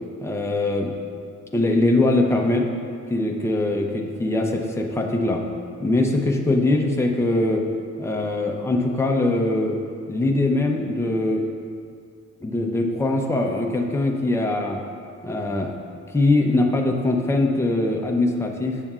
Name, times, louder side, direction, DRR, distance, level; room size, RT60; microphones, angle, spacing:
voice 1, 0.2-0.9 1.5-2.6 3.1-5.4 5.8-7.6 8.0-9.8 10.1-11.4 12.4-14.8 15.2-15.7 16.1-18.8, left 2 dB, 10° left, 1 dB, 0.7 m, -22 dB
9.0 x 6.9 x 2.4 m, 2.3 s
cardioid pair, 90°, 30 cm